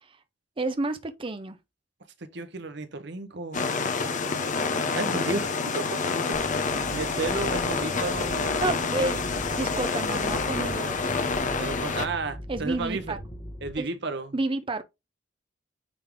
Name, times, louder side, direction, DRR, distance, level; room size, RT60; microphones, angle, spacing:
voice 1, 0.6-1.6 8.6-11.2 12.5-13.2 13.8-13.9 14.3-14.8, right 3 dB, 30° right, 0.6 m, -30 dB
voice 2, 2.2-3.7 5.0-6.0 6.3-8.7 9.0-9.1 11.4-13.2 13.6-14.4, right 3 dB, 65° right, 1.2 m, -33 dB
sound 1, 3.5-12.1, left 4 dB, 45° left, 1.1 m, -28 dB
sound 2, 6.3-13.7, equal, 25° left, 1.5 m, -40 dB
9.2 x 3.8 x 3.5 m
head